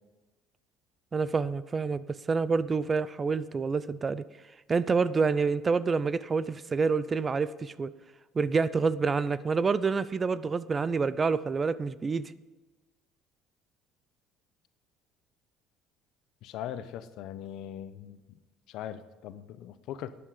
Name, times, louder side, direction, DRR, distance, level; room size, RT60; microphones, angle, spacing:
voice 1, 1.1-4.2 4.7-7.9 8.4-12.3, right 4 dB, 30° right, 17 dB, 0.5 m, -27 dB
voice 2, 16.4-18.4 18.7-20.1, left 10 dB, 70° left, 12 dB, 0.8 m, -40 dB
12.5 x 9.9 x 5.0 m, 1.2 s
supercardioid pair, 95°, 0 cm